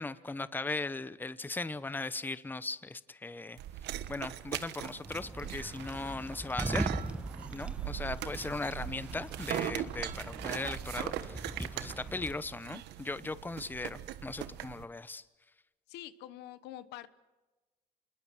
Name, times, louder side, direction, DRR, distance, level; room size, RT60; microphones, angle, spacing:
voice 1, 0.0-3.6 4.1-6.9 7.5-15.2, left 3 dB, 10° left, 15 dB, 0.9 m, -38 dB
sound 1, 3.6-14.8, right 13 dB, 85° right, 1.3 m, -40 dB
sound 2, 5.0-12.4, right 1 dB, 5° right, 1.4 m, -40 dB
voice 2, 15.9-17.1, left 13 dB, 90° left, 14 dB, 1.2 m, -46 dB
27.0 x 21.0 x 6.3 m, 1.2 s
cardioid pair, 110°, 17 cm